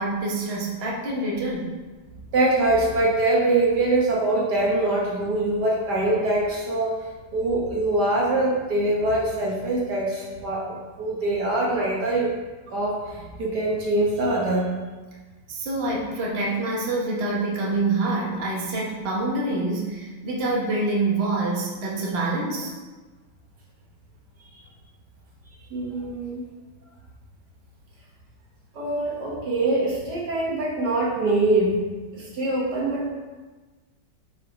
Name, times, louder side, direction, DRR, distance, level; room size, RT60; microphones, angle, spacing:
voice 1, 0.0-1.7 15.5-22.7, right 2 dB, 35° right, -4 dB, 1.2 m, -26 dB
voice 2, 2.3-7.0 7.3-12.3 12.7-14.7 25.7-26.4 28.8-31.8 32.1-33.1, right 2 dB, 60° right, -3 dB, 1.6 m, -23 dB
5.5 x 4.6 x 5.2 m, 1.3 s
omnidirectional pair, 2.2 m